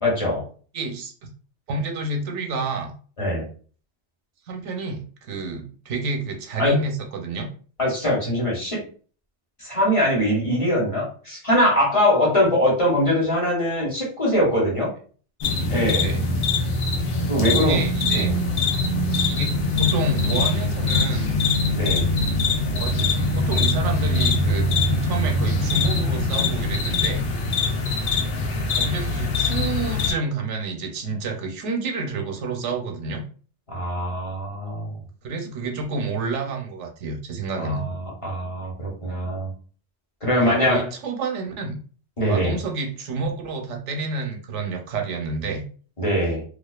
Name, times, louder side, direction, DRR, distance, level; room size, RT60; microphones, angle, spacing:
voice 1, 0.0-0.4 3.2-3.5 6.6-6.8 7.8-8.8 9.6-14.9 15.7-16.1 17.3-17.8 18.1-18.4 21.7-22.1 33.7-34.9 37.6-39.5 40.2-40.8 42.2-42.6 46.0-46.4, left 1 dB, 30° left, -5 dB, 0.9 m, -22 dB
voice 2, 0.7-1.3 1.7-2.9 4.5-7.5 16.0-16.3 17.6-18.3 19.3-21.4 22.7-24.7 25.0-27.2 28.8-33.2 35.2-37.8 40.4-41.8 42.3-45.6, right 3 dB, 90° right, 3 dB, 1.0 m, -29 dB
sound 1, 15.4-30.1, left 2 dB, 80° left, 0.9 m, -23 dB
2.4 x 2.3 x 2.3 m, 0.41 s
omnidirectional pair, 1.2 m